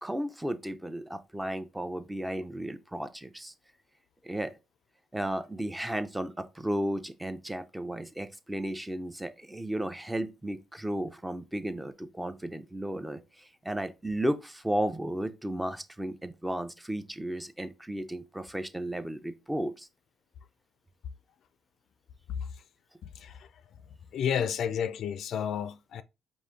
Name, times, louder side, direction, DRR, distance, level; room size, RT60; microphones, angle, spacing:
voice 1, 0.0-3.5 4.2-4.5 5.1-19.9, right 1 dB, 10° right, 0.6 m, -34 dB
voice 2, 23.0-23.5 24.1-26.0, left 8 dB, 70° left, 0.4 m, -31 dB
5.0 x 2.5 x 3.6 m
cardioid pair, 90°, 0 cm